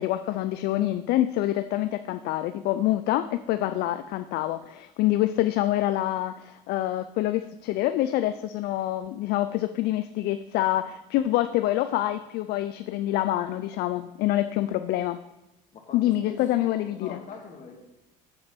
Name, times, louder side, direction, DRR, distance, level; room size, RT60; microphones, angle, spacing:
voice 1, 0.0-15.2 15.9-17.2, left 14 dB, 65° left, 10 dB, 0.4 m, -26 dB
voice 2, 15.7-17.7, left 5 dB, 45° left, 2 dB, 1.9 m, -44 dB
7.6 x 6.3 x 4.4 m, 0.97 s
supercardioid pair, 95°, 18 cm